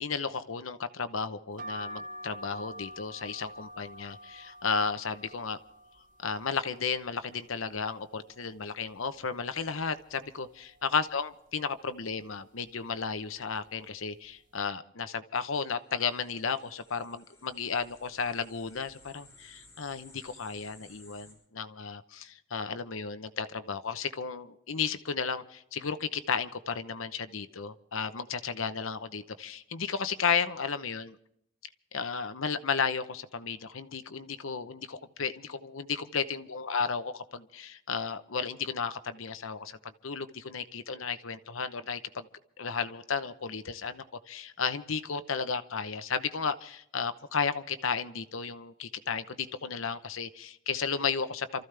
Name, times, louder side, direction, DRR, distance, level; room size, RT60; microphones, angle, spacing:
voice 1, 0.0-5.6 6.2-31.2 31.9-42.3 42.6-51.6, left 5 dB, 90° left, 11 dB, 0.9 m, -33 dB
sound 1, 1.6-7.3 7.7-8.5 8.9-9.0 9.1-10.3 10.8-11.1 11.9-12.2 13.0-13.2 13.5-13.7, equal, 40° right, 0.9 m, -47 dB
sound 2, 16.0-21.3, left 2 dB, 15° left, 6.1 m, -57 dB
28.0 x 14.5 x 3.4 m, 0.72 s
head